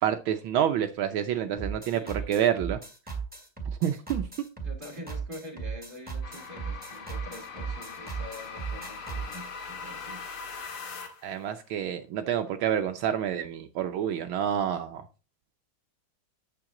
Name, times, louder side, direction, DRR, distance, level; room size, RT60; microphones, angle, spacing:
voice 1, 0.0-2.8 3.8-4.2 11.2-15.0, right 9 dB, 75° right, 7 dB, 1.5 m, -28 dB
sound 1, 1.6-9.5, right 5 dB, 5° right, 2.3 m, -36 dB
voice 2, 1.8-2.3 4.6-10.2, left 1 dB, 25° right, 3 dB, 2.8 m, -45 dB
sound 2, 6.2-11.4, left 5 dB, 85° left, 2.5 m, -41 dB
8.9 x 7.8 x 3.8 m, 0.32 s
omnidirectional pair, 2.3 m